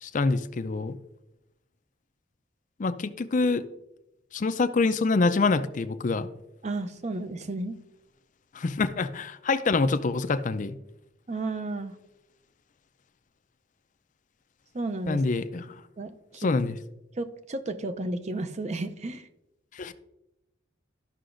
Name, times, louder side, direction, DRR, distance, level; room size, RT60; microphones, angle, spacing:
voice 1, 0.0-0.9 2.8-3.7 4.3-6.3 8.5-10.8 15.1-15.6 16.4-16.8 19.7-19.9, left 3 dB, 40° left, 11 dB, 0.4 m, -26 dB
voice 2, 6.6-7.8 11.3-12.0 14.7-15.2 15.6-16.5 17.1-19.3, right 2 dB, 35° right, 9 dB, 0.5 m, -33 dB
13.0 x 5.8 x 2.5 m, 0.91 s
head